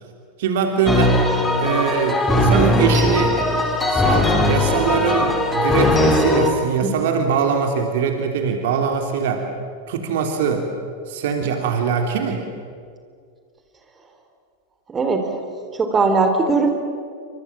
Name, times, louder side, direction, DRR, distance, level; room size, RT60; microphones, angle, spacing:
voice 1, 0.4-1.2 1.6-3.4 3.9-9.5 9.9-10.7 11.1-12.4, right 6 dB, 55° right, 4 dB, 3.2 m, -22 dB
sound 1, 0.9-6.5, left 1 dB, 10° left, 3.9 m, -19 dB
voice 2, 14.9-15.3 15.8-16.7, right 3 dB, 20° right, 5 dB, 3.9 m, -19 dB
29.5 x 25.5 x 7.4 m, 2.2 s
figure-of-eight pair, 90°, 0 cm